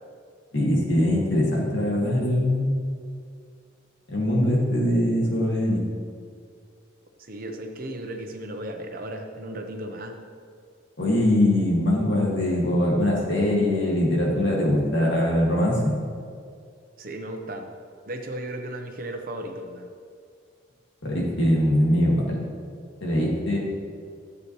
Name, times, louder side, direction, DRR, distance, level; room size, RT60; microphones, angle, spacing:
voice 1, 0.5-2.7 4.1-5.8 11.0-15.9 21.0-22.4 23.0-23.6, left 1 dB, 70° left, -3 dB, 2.3 m, -22 dB
voice 2, 7.2-10.1 17.0-17.7 18.1-19.9, right 1 dB, 50° right, 4 dB, 0.9 m, -35 dB
13.0 x 8.3 x 3.2 m, 2.2 s
head